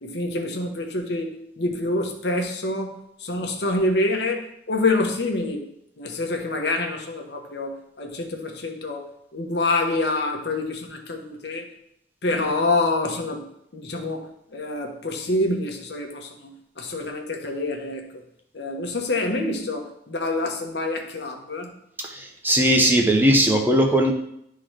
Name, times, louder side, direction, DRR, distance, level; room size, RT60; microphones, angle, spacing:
voice 1, 0.0-5.6 6.0-11.7 12.2-13.5 13.7-18.2 18.5-21.7, left 2 dB, 70° left, 2 dB, 1.0 m, -27 dB
voice 2, 22.0-24.1, right 1 dB, 10° right, 2 dB, 0.6 m, -19 dB
11.5 x 3.8 x 3.2 m, 0.77 s
head